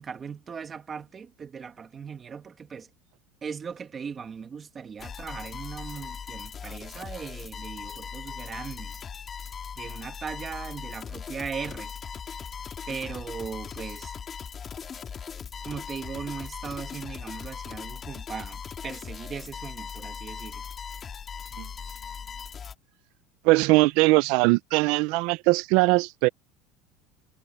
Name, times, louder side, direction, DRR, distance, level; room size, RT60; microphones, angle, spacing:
voice 1, 0.0-2.9 3.4-9.0 9.8-11.9 12.9-14.1 15.6-20.6, right 6 dB, 20° right, 2.2 m, -38 dB
sound 1, 5.0-22.7, left 7 dB, 25° left, 2.1 m, -39 dB
voice 2, 23.4-26.3, right 23 dB, 60° right, 0.5 m, -21 dB
cardioid pair, 155°, 0 cm